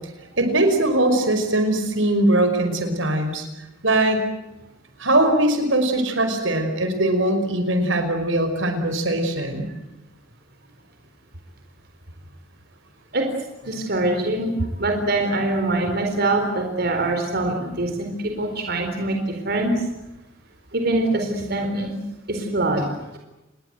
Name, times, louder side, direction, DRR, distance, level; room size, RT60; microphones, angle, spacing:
voice 1, 0.4-3.4 3.8-4.2 5.0-9.7, right 1 dB, 75° right, 7 dB, 5.3 m, -21 dB
voice 2, 13.7-14.5 14.8-19.7 20.7-22.0 22.3-22.9, right 2 dB, 55° right, 3 dB, 4.3 m, -23 dB
29.5 x 21.5 x 8.0 m, 0.94 s
head